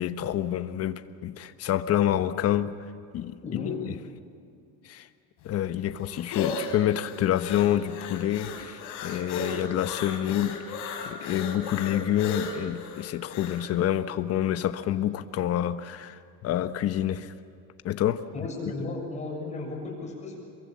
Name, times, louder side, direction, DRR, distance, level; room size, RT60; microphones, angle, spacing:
voice 1, 0.0-2.7 3.1-3.4 3.6-3.9 4.8-5.1 5.4-10.8 11.1-17.3 17.8-18.5 18.8-18.9, left 11 dB, 45° left, 10 dB, 1.2 m, -28 dB
voice 2, 3.4-3.8 18.3-20.4, left 2 dB, 20° left, -1 dB, 6.8 m, -35 dB
sound 1, 5.4-13.7, left 4 dB, 65° left, 4.4 m, -36 dB
27.0 x 23.0 x 7.5 m, 2.5 s
cardioid pair, 145°, 33 cm